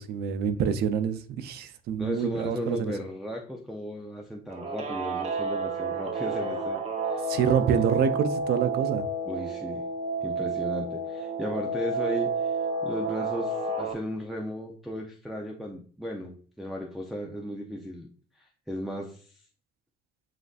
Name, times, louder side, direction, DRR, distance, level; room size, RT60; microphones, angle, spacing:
voice 1, 0.0-2.8 7.3-9.0, right 7 dB, 70° right, 0.5 m, -26 dB
voice 2, 2.0-6.8 7.1-7.3 7.7-7.8 9.2-9.8 10.2-18.1 18.3-19.3, equal, ahead, 0.5 m, -35 dB
Guitar, 4.5-13.9, right 3 dB, 40° right, 0.8 m, -30 dB
7.4 x 2.5 x 2.4 m
cardioid pair, 110°, 17 cm